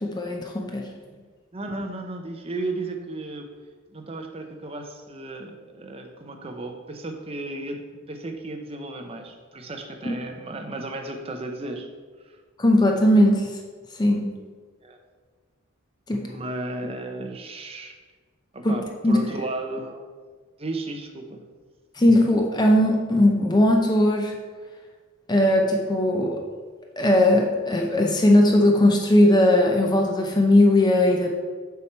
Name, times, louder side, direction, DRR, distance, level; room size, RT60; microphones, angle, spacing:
voice 1, 0.0-0.9 10.0-10.2 12.6-13.6 14.0-14.3 16.1-16.3 18.6-18.8 19.0-19.2 22.0-24.4 25.3-26.4 27.0-31.3, left 1 dB, 20° left, 2 dB, 0.5 m, -19 dB
voice 2, 1.5-3.5 3.9-11.9 12.2-12.4 14.8-15.0 16.2-18.0 18.5-20.1 20.6-21.4, right 2 dB, 30° right, 4 dB, 0.7 m, -34 dB
6.9 x 4.7 x 4.5 m, 1.5 s
head